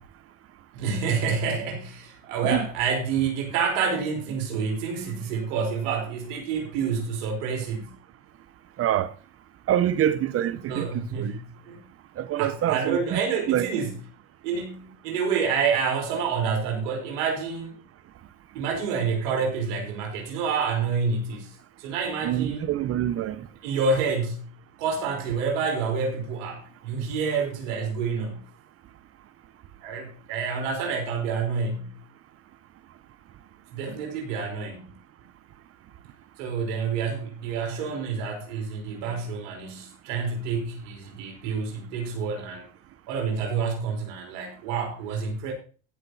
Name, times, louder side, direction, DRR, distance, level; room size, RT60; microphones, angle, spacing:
voice 1, 0.7-7.9 10.7-11.4 11.6-11.8 12.4-14.0 14.4-17.8 18.5-21.5 21.8-22.7 23.6-24.5 24.8-28.4 29.8-31.9 33.7-34.9 36.4-42.7 43.1-45.5, right 5 dB, 70° right, 5.0 m, -28 dB
voice 2, 8.8-9.1 9.7-11.4 12.2-13.2 13.5-13.7 22.2-23.5, right 11 dB, 35° right, 1.0 m, -25 dB
15.5 x 7.0 x 4.1 m
supercardioid pair, 120°, 39 cm